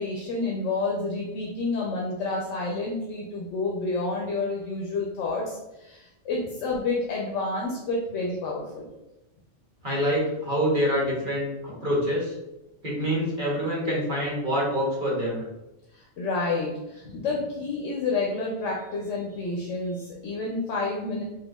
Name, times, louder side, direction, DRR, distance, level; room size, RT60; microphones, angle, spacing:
voice 1, 0.0-8.9 15.9-21.2, left 3 dB, 85° left, -2 dB, 1.0 m, -29 dB
voice 2, 9.8-12.3 12.8-15.4, equal, 45° right, -5 dB, 1.2 m, -26 dB
4.6 x 2.4 x 2.3 m, 0.96 s
omnidirectional pair, 1.3 m